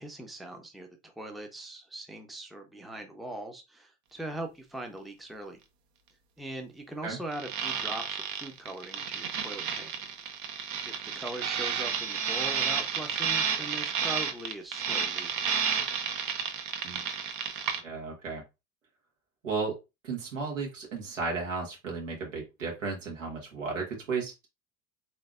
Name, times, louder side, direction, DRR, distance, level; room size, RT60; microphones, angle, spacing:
voice 1, 0.0-5.6 6.4-9.9 10.8-15.3, right 1 dB, ahead, 0.7 m, -41 dB
sound 1, 7.3-17.8, right 7 dB, 50° right, 0.9 m, -31 dB
voice 2, 17.8-18.4 19.4-19.8 20.0-24.5, right 4 dB, 80° right, 1.5 m, -34 dB
3.9 x 3.4 x 2.4 m
figure-of-eight pair, 70°, 38 cm